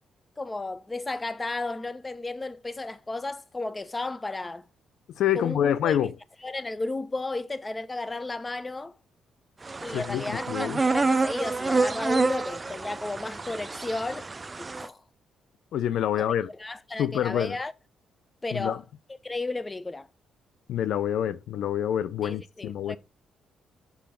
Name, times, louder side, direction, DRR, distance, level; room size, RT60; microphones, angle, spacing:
voice 1, 0.4-4.6 5.3-6.1 6.4-8.9 9.8-14.3 14.6-15.0 16.1-17.7 18.4-18.8 19.2-20.1 22.2-23.0, left 2 dB, 20° left, 0.7 m, -33 dB
voice 2, 5.2-6.1 9.9-10.8 15.7-16.5 17.0-17.6 18.5-18.8 20.7-23.0, left 10 dB, 75° left, 0.5 m, -27 dB
sound 1, 9.6-14.9, right 3 dB, 25° right, 0.5 m, -28 dB
7.2 x 5.0 x 4.3 m
cardioid pair, 90°, 0 cm